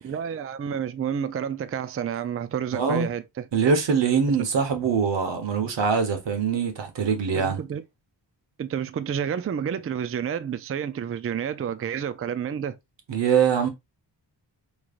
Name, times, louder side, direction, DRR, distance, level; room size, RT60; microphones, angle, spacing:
voice 1, 0.0-3.5 4.4-4.5 7.3-7.8 8.6-12.8, right 8 dB, 35° right, 0.4 m, -30 dB
voice 2, 2.7-3.1 3.5-7.6 13.1-13.7, right 6 dB, 85° right, 1.2 m, -23 dB
5.0 x 3.1 x 2.5 m
wide cardioid pair, 90°, 42 cm